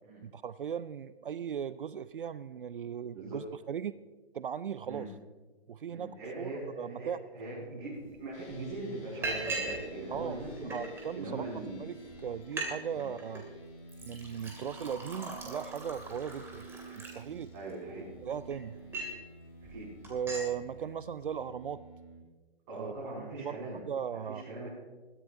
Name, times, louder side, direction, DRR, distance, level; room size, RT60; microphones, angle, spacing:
voice 1, 0.2-3.9 4.3-5.1 5.7-6.5 6.8-7.2 10.1-10.4 10.7-11.5 11.8-12.0 12.2-13.4 14.0-16.7 17.0-17.5 18.2-18.8 20.1-21.8 22.7-23.6 23.9-24.4, right 8 dB, 55° right, 16 dB, 0.5 m, -38 dB
voice 2, 5.9-10.7 11.1-11.9 12.9-13.0 17.5-18.0 19.7-19.9 22.7-23.8 24.2-24.7, right 2 dB, 30° right, -7 dB, 5.8 m, -41 dB
Liquid, 8.1-8.2 8.5-8.7 9.2-9.8 10.1-11.0 11.7-11.8 12.1-12.2 12.4-12.7 13.0-13.4 13.9-17.7 18.2-19.2 19.6-19.8 20.0-20.5, right 3 dB, 10° right, 2.4 m, -39 dB
sound 1, 8.3-22.2, right 2 dB, 30° left, 5.3 m, -50 dB
21.5 x 15.0 x 2.6 m, 1.3 s
figure-of-eight pair, 140°, 31 cm